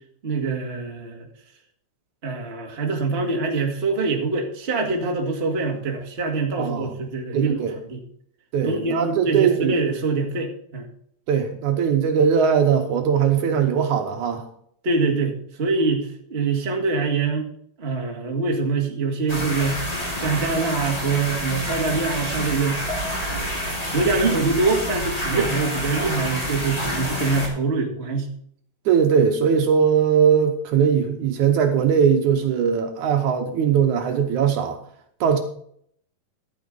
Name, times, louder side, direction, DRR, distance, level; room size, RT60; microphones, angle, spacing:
voice 1, 0.2-1.3 2.2-8.0 8.6-10.9 14.8-17.5 17.8-19.8 20.1-22.8 23.9-28.3, right 3 dB, 25° right, 1 dB, 1.5 m, -24 dB
voice 2, 6.6-6.9 7.3-7.7 8.5-9.8 11.3-14.5 25.3-25.5 28.9-34.8 35.2-35.4, right 7 dB, 70° right, 5 dB, 2.3 m, -20 dB
sound 1, 19.3-27.5, equal, 10° left, 2.5 m, -28 dB
12.0 x 9.1 x 3.8 m, 0.65 s
omnidirectional pair, 3.8 m